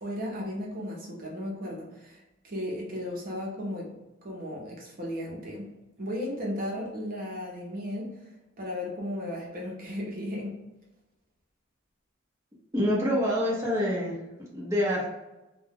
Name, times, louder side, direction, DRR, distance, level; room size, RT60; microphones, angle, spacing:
voice 1, 0.0-3.9 4.2-5.7 6.0-8.1 8.6-10.5, left 1 dB, 50° right, -2 dB, 0.8 m, -35 dB
voice 2, 12.7-14.2 14.5-15.1, equal, 15° right, -5 dB, 0.9 m, -26 dB
2.3 x 2.2 x 3.5 m, 1.0 s
head